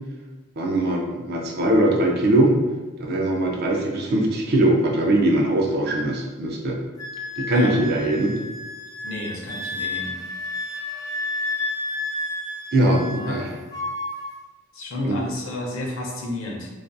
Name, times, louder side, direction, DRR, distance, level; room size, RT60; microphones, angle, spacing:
voice 1, 0.6-2.6 3.0-6.8 7.4-8.3 12.7-13.5 15.0-15.2, right 1 dB, 50° right, 0 dB, 0.4 m, -21 dB
Wind instrument woodwind instrument, 7.0-13.4 13.7-14.3, left 2 dB, 15° left, 0.3 m, -31 dB
voice 2, 9.0-10.2 13.2-13.6 14.7-16.7, left 1 dB, 70° left, -1 dB, 0.5 m, -31 dB
2.4 x 2.2 x 2.5 m, 1.2 s
head